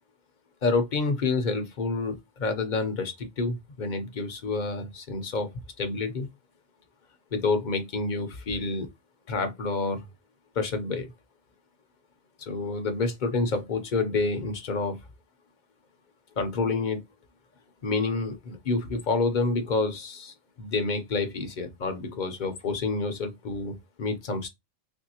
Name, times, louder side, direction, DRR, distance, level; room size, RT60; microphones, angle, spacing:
voice 1, 0.6-5.5 5.8-6.3 7.3-8.9 9.3-10.1 10.6-11.1 12.4-15.0 16.4-17.0 17.8-24.5, left 3 dB, 45° left, 0.7 m, -28 dB
3.3 x 2.6 x 2.8 m
omnidirectional pair, 1.3 m